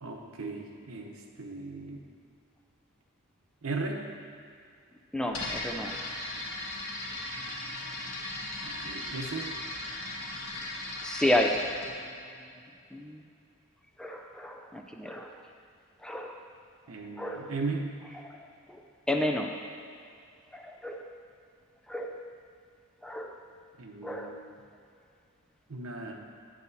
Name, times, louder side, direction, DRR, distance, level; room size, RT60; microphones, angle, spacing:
voice 1, 0.0-2.0 3.6-4.0 8.6-9.5 16.9-17.9 23.8-24.5 25.7-26.1, right 3 dB, 80° right, 2 dB, 0.8 m, -37 dB
voice 2, 5.1-6.0 11.0-11.6 12.0-12.1 12.9-13.2 14.0-15.3 16.0-16.4 17.2-17.5 18.2-18.3 18.7-18.8 19.1-19.5 20.5-21.0 21.9-22.2 23.0-23.3 24.0-24.3, left 1 dB, 5° left, 2 dB, 0.3 m, -31 dB
sound 1, 5.3-11.9, left 2 dB, 75° left, 1.4 m, -37 dB
9.9 x 8.2 x 2.7 m, 2.4 s
head